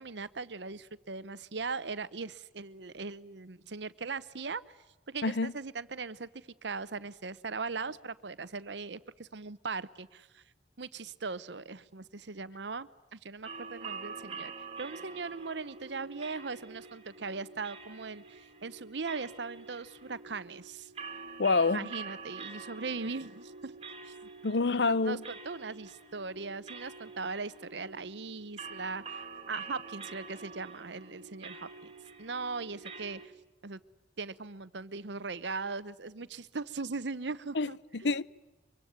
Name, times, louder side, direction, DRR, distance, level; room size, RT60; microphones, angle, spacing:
voice 1, 0.0-4.8 5.1-10.4 10.8-14.5 14.8-20.9 21.7-23.7 24.1-24.2 24.9-31.7 32.2-33.3 33.6-33.8 34.2-38.2, right 4 dB, 65° right, 0.9 m, -39 dB
voice 2, 5.2-5.5 21.4-21.9 24.4-25.2 37.5-38.2, left 3 dB, 65° left, 0.8 m, -27 dB
sound 1, 13.4-33.3, right 4 dB, 30° right, 2.6 m, -46 dB
25.5 x 23.5 x 9.5 m
head